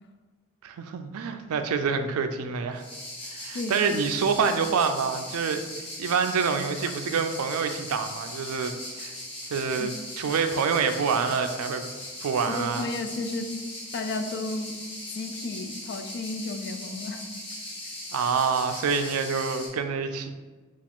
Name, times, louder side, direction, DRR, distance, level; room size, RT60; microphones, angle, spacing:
voice 1, 0.6-2.8 3.3-9.2 9.5-11.9 12.2-12.9 18.1-20.3, right 5 dB, 85° right, 8 dB, 0.4 m, -27 dB
sound 1, 2.7-19.7, left 1 dB, 25° left, 0.9 m, -39 dB
voice 2, 12.5-13.5 13.9-14.8 15.1-17.2, left 3 dB, 50° left, 7 dB, 0.3 m, -33 dB
4.8 x 2.4 x 3.6 m, 1.3 s
head